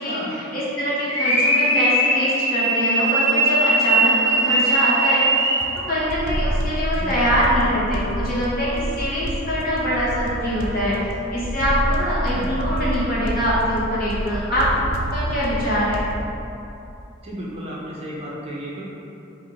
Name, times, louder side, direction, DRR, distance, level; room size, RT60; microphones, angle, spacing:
voice 1, 0.0-5.3 5.9-11.0 11.3-14.8 15.1-16.0, equal, 50° left, -9 dB, 1.1 m, -23 dB
sound 1, 1.1-5.8, right 2 dB, 80° left, 0.7 m, -20 dB
sound 2, 5.6-16.3, right 1 dB, 90° right, 0.4 m, -28 dB
voice 2, 17.2-18.8, right 1 dB, 30° right, -5 dB, 0.5 m, -33 dB
3.5 x 2.6 x 3.8 m, 2.9 s
head